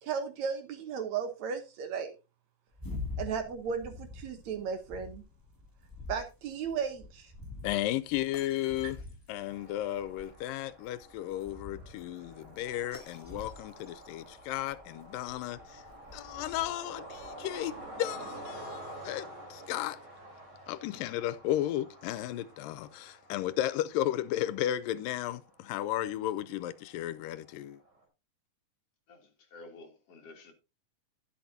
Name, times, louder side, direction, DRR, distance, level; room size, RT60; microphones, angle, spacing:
voice 1, 0.0-2.1 3.2-5.2 6.1-7.3, right 6 dB, 65° right, 2.1 m, -35 dB
sound 1, 2.7-17.9, left 3 dB, 10° left, 1.0 m, -47 dB
voice 2, 7.6-9.0 9.3-15.8 16.1-20.0 20.7-27.8, left 13 dB, 85° left, 2.3 m, -34 dB
sound 2, 9.5-28.0, right 1 dB, 30° right, 4.2 m, -49 dB
voice 3, 29.1-30.5, left 2 dB, 50° left, 2.6 m, -51 dB
11.5 x 11.0 x 2.7 m
omnidirectional pair, 3.8 m